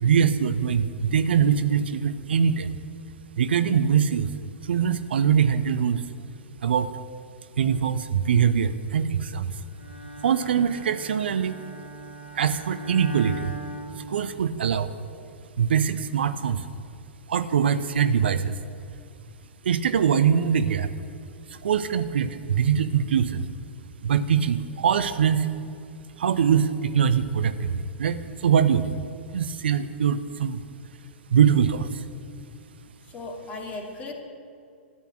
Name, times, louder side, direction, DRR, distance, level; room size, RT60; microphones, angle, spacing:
voice 1, 0.0-2.7 3.4-4.3 4.6-6.1 6.6-6.9 7.6-9.6 10.2-11.6 12.3-13.5 14.0-14.9 15.6-16.7 17.3-18.6 19.6-20.9 21.5-23.5 24.0-25.5 26.2-29.0 29.3-30.6 31.3-32.0, right 7 dB, 60° right, 12 dB, 0.7 m, -23 dB
Bowed string instrument, 9.8-14.7, right 2 dB, 80° left, 2.1 m, -39 dB
voice 2, 33.1-34.1, left 3 dB, 25° left, 1 dB, 2.4 m, -36 dB
13.5 x 8.3 x 10.0 m, 2.4 s
figure-of-eight pair, 105°, 6 cm